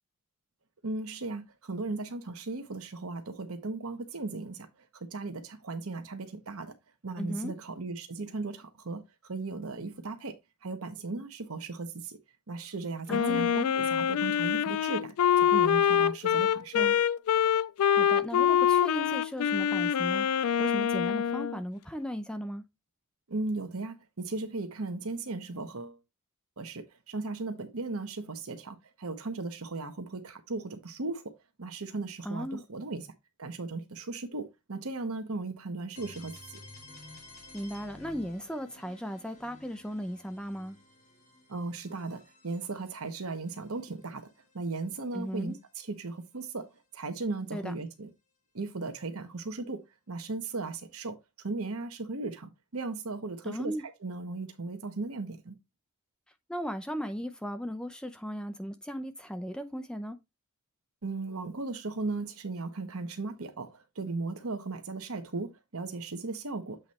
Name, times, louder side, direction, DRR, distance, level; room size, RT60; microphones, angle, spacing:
voice 1, 0.8-4.7 4.9-6.7 7.0-10.4 10.6-12.2 12.5-17.0 23.3-26.0 26.6-31.3 31.6-33.1 33.4-36.6 41.5-44.3 44.5-48.1 48.5-49.8 50.1-53.7 54.0-55.5 61.0-66.8, right 3 dB, 75° right, 1.1 m, -37 dB
voice 2, 7.2-7.5 13.1-13.5 17.9-22.6 32.2-32.6 37.5-40.8 45.1-45.6 47.5-47.7 53.4-53.8 56.5-60.2, equal, 5° left, 0.5 m, -36 dB
Wind instrument woodwind instrument, 13.1-21.6, left 9 dB, 80° left, 0.3 m, -25 dB
sound 1, 36.0-45.7, left 2 dB, 35° left, 2.1 m, -53 dB
8.0 x 3.2 x 4.1 m
head